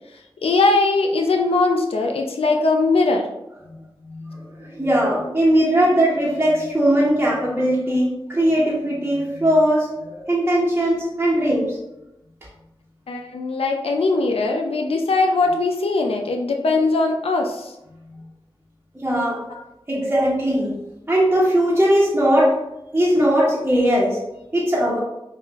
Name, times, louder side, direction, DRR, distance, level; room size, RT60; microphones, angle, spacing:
voice 1, 0.4-3.3 13.1-17.7 19.5-19.6, left 3 dB, 80° left, 3 dB, 0.4 m, -20 dB
voice 2, 4.0-11.8 19.0-19.4 19.9-20.7 21.1-22.6 22.9-24.2 24.5-25.0, equal, 20° right, -9 dB, 1.1 m, -19 dB
5.5 x 2.4 x 2.4 m, 0.88 s
cardioid pair, 45°, 10 cm